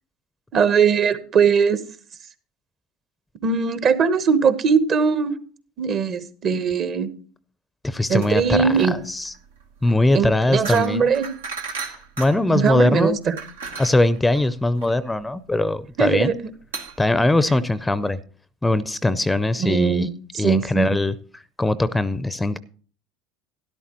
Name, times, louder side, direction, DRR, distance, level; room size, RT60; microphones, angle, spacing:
voice 1, 0.5-1.8 3.4-5.4 5.8-7.1 8.1-9.0 10.1-11.3 12.5-13.3 16.0-16.5 19.6-21.0, right 6 dB, 45° right, 12 dB, 1.1 m, -20 dB
voice 2, 7.8-9.3 9.8-11.0 12.2-13.2 13.8-16.3 17.0-18.2 18.6-20.1 20.4-22.6, left 2 dB, 10° left, 17 dB, 0.6 m, -21 dB
sound 1, 8.1-18.1, right 4 dB, 85° right, 1.3 m, -37 dB
12.5 x 11.5 x 3.0 m, 0.42 s
hypercardioid pair, 70°, 0 cm